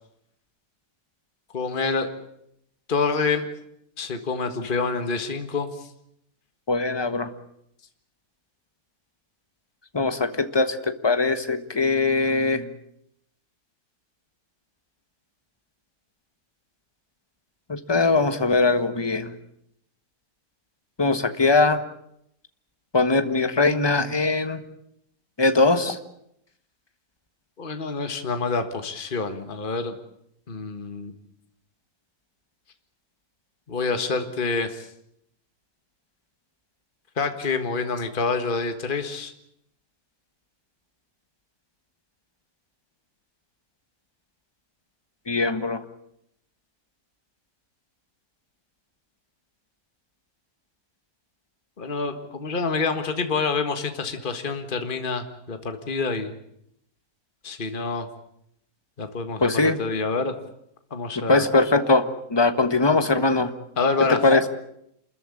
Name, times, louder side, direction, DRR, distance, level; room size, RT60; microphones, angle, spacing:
voice 1, 1.5-2.1 2.9-3.5 4.0-5.9 27.6-30.0 30.5-31.1 33.7-34.9 37.2-39.3 51.8-56.3 57.4-58.1 59.0-60.3 60.9-61.4 63.8-64.2, left 4 dB, 35° left, 7 dB, 1.8 m, -27 dB
voice 2, 6.7-7.3 9.9-12.7 17.7-19.3 21.0-21.8 22.9-24.6 25.4-26.0 45.3-45.8 59.4-59.8 61.3-62.0 62.3-63.5 64.1-64.4, left 3 dB, 15° left, 9 dB, 1.4 m, -21 dB
27.5 x 14.5 x 9.9 m, 0.76 s
omnidirectional pair, 1.6 m